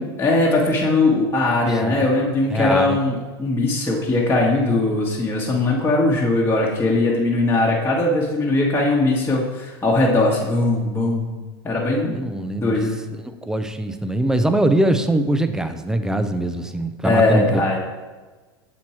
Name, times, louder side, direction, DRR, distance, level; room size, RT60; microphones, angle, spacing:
voice 1, 0.2-11.3 11.6-12.2 12.6-13.0 17.0-17.8, left 2 dB, 15° left, -4 dB, 1.3 m, -20 dB
voice 2, 2.5-3.0 12.1-12.8 13.3-17.5, right 1 dB, 5° right, 9 dB, 0.5 m, -22 dB
7.2 x 4.5 x 4.4 m, 1.3 s
hypercardioid pair, 105°, 14 cm